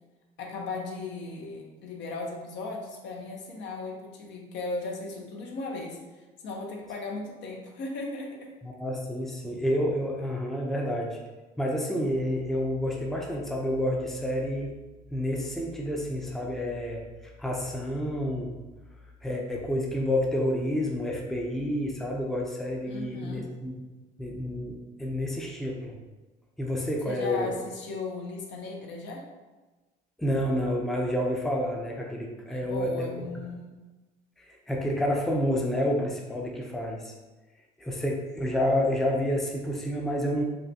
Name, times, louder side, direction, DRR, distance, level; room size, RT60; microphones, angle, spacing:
voice 1, 0.4-8.5 22.8-23.5 27.0-29.3 32.5-33.8, left 3 dB, 65° left, 0 dB, 0.9 m, -37 dB
voice 2, 8.6-11.2 11.6-14.7 15.1-17.0 17.4-18.6 19.2-23.7 24.2-26.0 26.6-27.5 30.2-33.3 34.4-37.1 37.8-40.4, equal, ahead, -1 dB, 0.6 m, -29 dB
5.5 x 2.3 x 2.8 m, 1.2 s
supercardioid pair, 95°, 20 cm